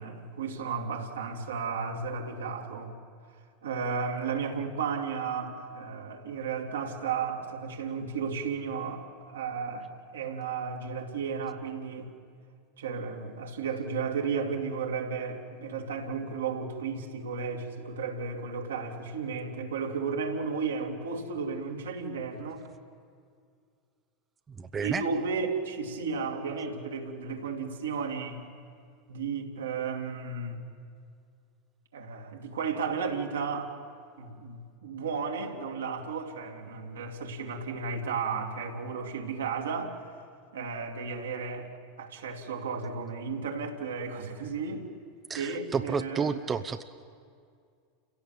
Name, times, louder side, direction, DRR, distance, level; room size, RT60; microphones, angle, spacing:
voice 1, 0.0-2.9 3.6-12.1 12.8-22.6 24.8-28.5 29.1-30.6 31.9-33.7 34.2-39.9 40.5-41.7 42.0-44.9 45.3-46.4, right 5 dB, 80° right, 2.6 m, -34 dB
voice 2, 24.6-25.0 45.3-46.8, right 5 dB, 25° right, 0.8 m, -31 dB
29.5 x 17.0 x 7.3 m
hypercardioid pair, 90°, 0 cm